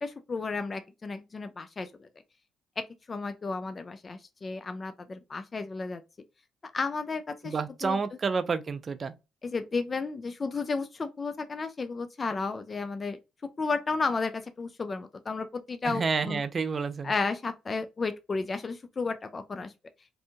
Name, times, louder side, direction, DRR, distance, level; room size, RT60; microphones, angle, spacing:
voice 1, 0.0-2.1 2.8-6.0 6.7-7.5 7.8-8.0 9.4-13.2 13.6-16.4 17.0-19.7, left 4 dB, 35° left, 0.3 m, -33 dB
voice 2, 7.4-9.1 15.8-17.1, right 5 dB, 40° right, 0.4 m, -29 dB
2.7 x 2.1 x 2.7 m
cardioid pair, 90°, 0 cm